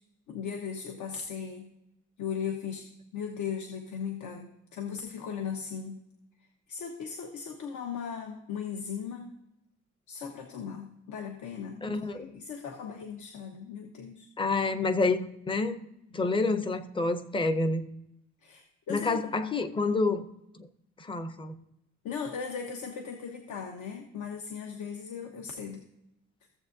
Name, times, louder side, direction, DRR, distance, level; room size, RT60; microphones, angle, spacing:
voice 1, 0.3-1.7 2.2-2.8 3.1-6.0 6.7-9.3 10.1-14.3 18.4-19.2 22.0-25.9, left 7 dB, 80° left, 1.0 m, -37 dB
voice 2, 11.8-12.3 14.4-15.8 16.1-17.9 18.9-20.2 21.0-21.5, left 3 dB, 15° left, 0.5 m, -28 dB
15.5 x 7.5 x 2.6 m
cardioid pair, 180°, 29 cm